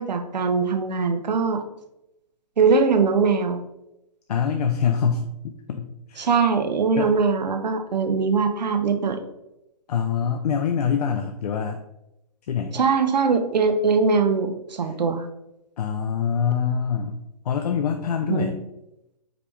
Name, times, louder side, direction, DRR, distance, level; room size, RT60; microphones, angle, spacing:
voice 1, 0.0-1.6 2.6-3.6 6.2-9.2 12.7-15.3 18.3-18.5, right 5 dB, 85° right, 7 dB, 0.7 m, -21 dB
voice 2, 4.3-6.3 7.0-7.1 9.9-11.8 12.5-12.8 15.8-17.2 17.5-18.6, left 7 dB, 65° left, 5 dB, 0.5 m, -25 dB
4.9 x 3.5 x 3.0 m, 0.87 s
hypercardioid pair, 145°, 21 cm